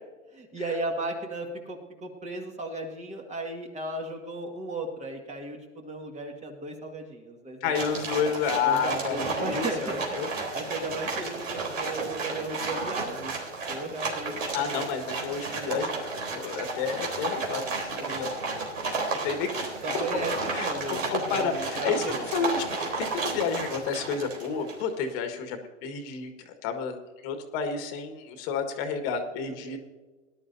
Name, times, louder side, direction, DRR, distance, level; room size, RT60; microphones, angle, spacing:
voice 1, 0.3-8.0 8.6-13.3 13.7-14.8 18.0-18.6 19.8-22.5 29.4-29.8, right 2 dB, 20° right, 3 dB, 1.8 m, -36 dB
voice 2, 7.6-10.3 14.5-18.4 18.8-19.6 19.9-20.0 20.5-22.0 22.3-27.0 27.2-29.8, left 6 dB, 50° left, 6 dB, 1.7 m, -31 dB
sound 1, 7.7-24.9, right 3 dB, 80° right, 3.8 m, -32 dB
19.0 x 11.5 x 2.7 m, 1.3 s
hypercardioid pair, 115°, 38 cm